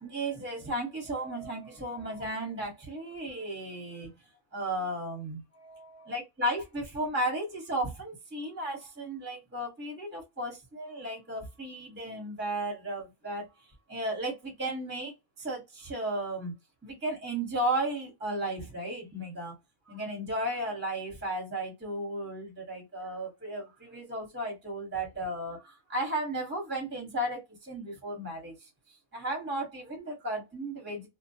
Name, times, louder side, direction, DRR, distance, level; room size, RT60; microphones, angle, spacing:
voice 1, 0.0-4.1 4.5-13.5 13.9-16.5 16.8-19.6 19.9-28.7 29.1-31.1, right 1 dB, 10° right, 0.9 m, -34 dB
2.3 x 2.2 x 2.7 m
omnidirectional pair, 1.5 m